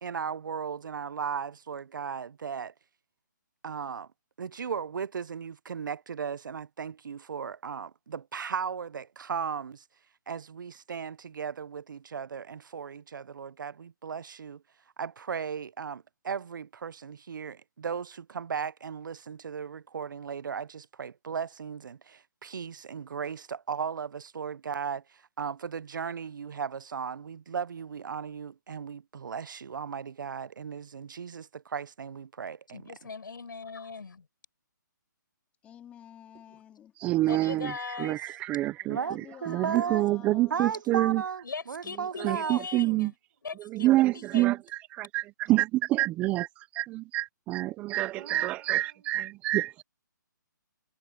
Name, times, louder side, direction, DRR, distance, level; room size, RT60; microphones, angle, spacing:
voice 1, 0.0-2.7 3.6-4.1 4.4-9.8 10.3-14.6 15.0-32.8 38.9-39.2 39.4-40.0 40.5-42.6 48.2-48.5, right 6 dB, 75° right, 0.5 m, -36 dB
voice 2, 32.7-34.3 37.2-38.4 41.4-43.1 43.4-43.9 44.1-44.6, left 5 dB, 80° left, 6.2 m, -40 dB
voice 3, 35.6-36.9 38.8-40.8, left 10 dB, 10° left, 3.1 m, -50 dB
voice 4, 37.0-41.2 42.2-43.1 43.6-46.5 46.7-49.8, right 17 dB, 15° right, 0.4 m, -27 dB
hypercardioid pair, 155°, 11 cm